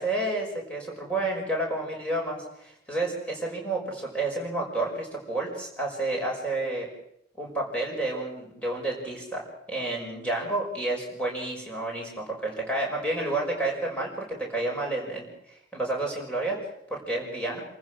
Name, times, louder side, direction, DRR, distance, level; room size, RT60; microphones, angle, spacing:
voice 1, 0.0-6.9 7.4-9.4 9.7-16.6 16.9-17.6, right 2 dB, 5° left, -1 dB, 6.1 m, -30 dB
28.0 x 15.0 x 6.4 m, 0.75 s
head